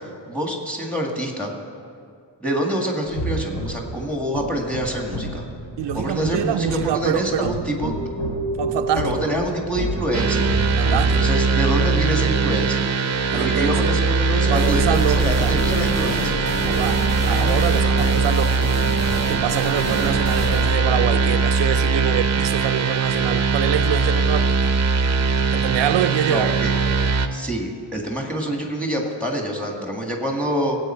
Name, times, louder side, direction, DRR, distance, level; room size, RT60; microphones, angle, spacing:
voice 1, 0.3-1.5 2.4-5.4 5.9-7.9 9.0-10.5 11.1-12.8 13.3-16.4 17.3-17.6 26.3-26.7 27.3-30.8, equal, 5° left, 1.7 m, -26 dB
sound 1, 3.1-11.2, right 1 dB, 85° left, 2.8 m, -30 dB
voice 2, 5.8-7.6 8.6-9.3 10.8-11.3 13.3-14.0 14.4-15.6 16.7-18.8 19.3-24.7 25.5-26.6, right 11 dB, 85° right, 0.6 m, -25 dB
sound 2, 10.1-27.3, right 4 dB, 40° right, 0.7 m, -20 dB
sound 3, 14.6-22.0, left 1 dB, 35° left, 2.3 m, -30 dB
18.0 x 8.3 x 4.4 m
wide cardioid pair, 130°, 42 cm